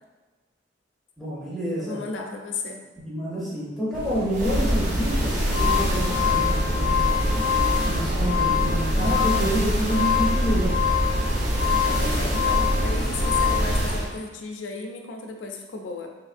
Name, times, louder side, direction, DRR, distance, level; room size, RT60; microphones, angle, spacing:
voice 1, 1.2-2.0 3.0-7.2 7.9-10.7, equal, ahead, -9 dB, 0.7 m, -28 dB
voice 2, 1.8-2.8 11.8-16.1, left 3 dB, 80° left, 3 dB, 0.5 m, -34 dB
sound 1, 3.9-14.0, right 1 dB, 55° right, 0.3 m, -37 dB
sound 2, 4.3-14.1, equal, 40° right, 0.8 m, -24 dB
sound 3, 5.5-13.7, left 9 dB, 40° left, 0.6 m, -26 dB
3.4 x 3.1 x 2.4 m, 1.2 s
head